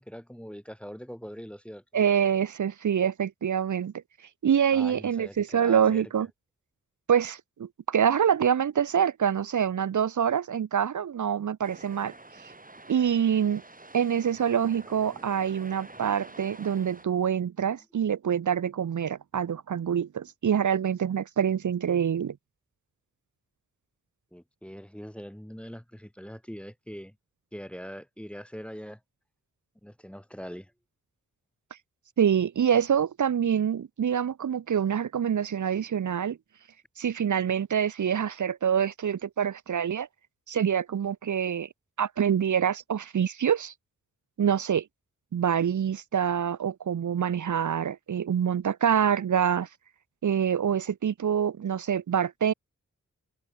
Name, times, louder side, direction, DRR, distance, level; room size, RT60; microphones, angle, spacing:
voice 1, 0.0-1.8 4.7-6.0 24.3-27.1 27.5-29.0 29.8-30.7, equal, 5° left, 1.6 m, -42 dB
voice 2, 1.9-3.9 4.4-6.3 7.1-12.1 12.4-12.5 12.9-13.6 13.9-22.4 32.2-36.4 37.0-40.1 40.5-41.7 42.0-43.7 44.4-44.8 45.3-49.7 50.2-52.5, right 8 dB, 70° right, 0.9 m, -26 dB
sound 1, 11.6-17.0, right 2 dB, 25° right, 5.1 m, -48 dB
cardioid pair, 45°, 31 cm